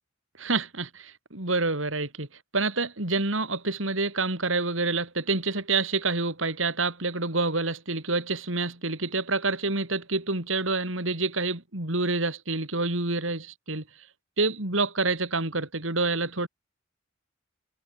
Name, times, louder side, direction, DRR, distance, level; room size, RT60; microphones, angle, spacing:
voice 1, 0.4-2.3 2.5-13.8 14.4-16.5, right 3 dB, 70° right, 4.0 m, -27 dB
head